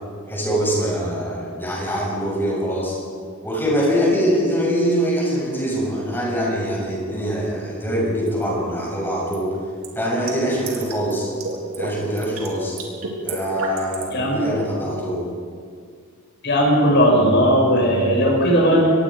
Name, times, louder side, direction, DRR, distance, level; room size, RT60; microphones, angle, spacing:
voice 1, 0.3-3.0 3.4-9.5 10.0-11.3 11.8-12.8 13.2-15.2, equal, 10° left, -4 dB, 7.2 m, -23 dB
sound 1, 8.3-8.4 9.3-11.1 11.4-11.9 12.2-12.5 12.8-14.1, right 3 dB, 80° right, 3.9 m, -31 dB
voice 2, 16.4-18.9, equal, 55° left, -3 dB, 6.3 m, -17 dB
24.5 x 21.0 x 5.1 m, 2.1 s
head